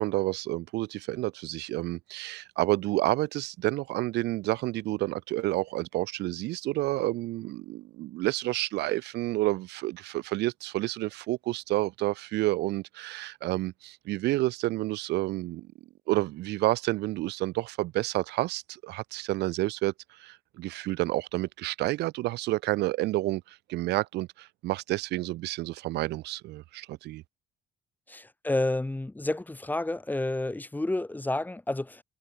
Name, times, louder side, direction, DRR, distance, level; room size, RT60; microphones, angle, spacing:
voice 1, 0.0-15.7 16.1-19.9 20.2-23.4 23.7-27.2, right 18 dB, 85° right, 5.1 m, -29 dB
voice 2, 28.1-32.0, left 2 dB, 10° left, 3.6 m, -30 dB
cardioid pair, 110°, 17 cm